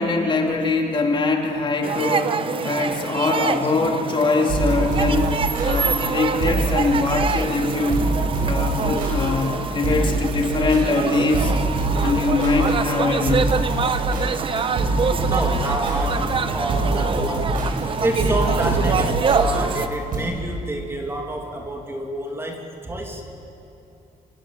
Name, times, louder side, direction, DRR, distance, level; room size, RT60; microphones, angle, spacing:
voice 1, 0.0-2.4 2.6-5.3 5.6-8.0 8.4-11.5 12.0-13.6, left 3 dB, 30° left, 1 dB, 2.9 m, -22 dB
sound 1, 1.8-19.9, right 5 dB, 35° right, 0.9 m, -26 dB
sound 2, 4.5-20.2, right 2 dB, 65° right, 7.6 m, -25 dB
voice 2, 15.2-23.2, right 1 dB, 15° right, 2 dB, 2.6 m, -28 dB
26.5 x 25.5 x 7.6 m, 2.8 s
cardioid pair, 160°, 15 cm